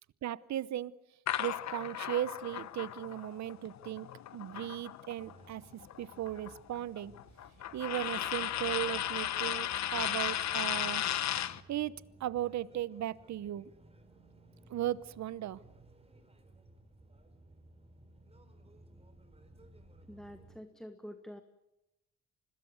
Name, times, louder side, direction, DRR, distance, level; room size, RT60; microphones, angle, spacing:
voice 1, 0.2-0.9 1.4-4.1 4.3-5.6 6.0-7.1 7.7-11.1 11.7-13.7 14.7-15.6, right 12 dB, 65° right, 18 dB, 1.0 m, -37 dB
sound 1, 1.3-5.3 5.6-11.6, left 11 dB, 65° left, 1.1 m, -35 dB
sound 2, 5.2-20.6, right 2 dB, 20° right, 4.1 m, -58 dB
voice 2, 20.1-21.4, equal, ahead, 8 dB, 1.4 m, -47 dB
25.5 x 20.0 x 8.0 m, 0.91 s
cardioid pair, 90°, 30 cm